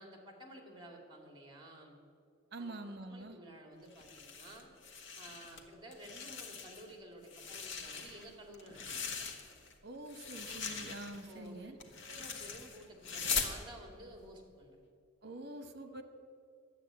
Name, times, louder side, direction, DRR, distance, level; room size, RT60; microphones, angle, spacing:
voice 1, 0.0-2.0 2.6-4.7 5.2-9.0 11.3-11.8 12.1-14.8, right 1 dB, 20° right, 3 dB, 2.3 m, -53 dB
voice 2, 2.5-3.4 9.8-11.8 15.2-16.0, right 1 dB, 55° right, 9 dB, 1.1 m, -46 dB
sound 1, 3.9-5.6 5.9-6.9 7.2-9.7 10.1-13.6, left 5 dB, 65° left, 1.4 m, -41 dB
12.0 x 8.1 x 8.9 m, 2.3 s
head